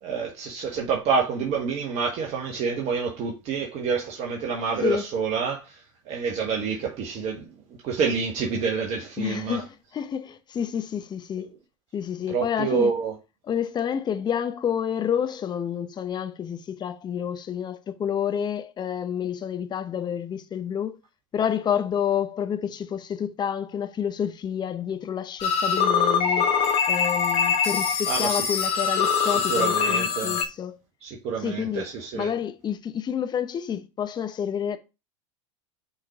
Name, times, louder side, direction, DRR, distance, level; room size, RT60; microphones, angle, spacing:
voice 1, 0.0-7.5 7.8-9.6 12.3-13.1 28.1-28.4 29.2-30.4 31.0-32.3, right 5 dB, 45° right, 1.3 m, -28 dB
voice 2, 9.2-11.5 11.9-12.9 13.5-21.0 21.3-26.5 26.9-30.8 31.4-31.8 32.1-34.8, left 8 dB, 25° left, 0.9 m, -29 dB
sound 1, 25.4-30.5, left 6 dB, 40° left, 1.5 m, -23 dB
6.2 x 3.9 x 4.7 m
hypercardioid pair, 90°, 16 cm